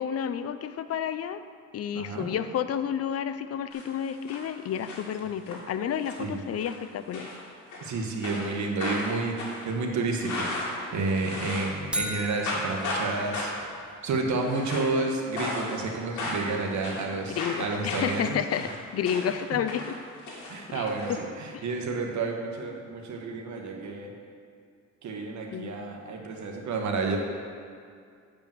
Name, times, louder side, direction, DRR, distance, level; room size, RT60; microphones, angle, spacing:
voice 1, 0.0-1.4 1.7-7.3 17.3-20.0 20.7-21.2 21.5-21.6 25.5-25.8, left 8 dB, 55° left, 12 dB, 0.5 m, -31 dB
voice 2, 1.9-2.3 6.2-6.4 7.8-10.5 10.9-13.5 14.0-18.4 19.5-19.6 20.5-24.1 25.0-27.2, right 3 dB, 70° right, 2 dB, 1.3 m, -30 dB
sound 1, 3.7-4.4 4.7-5.6 6.0-6.3 6.6-6.8 7.1-7.9 8.2-11.8 12.1-13.1 13.3-13.7 14.3-15.0 15.4-15.9 16.2-19.4 19.7-21.1, left 2 dB, 75° left, 2.2 m, -35 dB
sound 2, 11.9-14.0, equal, 5° right, 0.8 m, -36 dB
7.6 x 5.2 x 7.4 m, 2.3 s
cardioid pair, 90°, 30 cm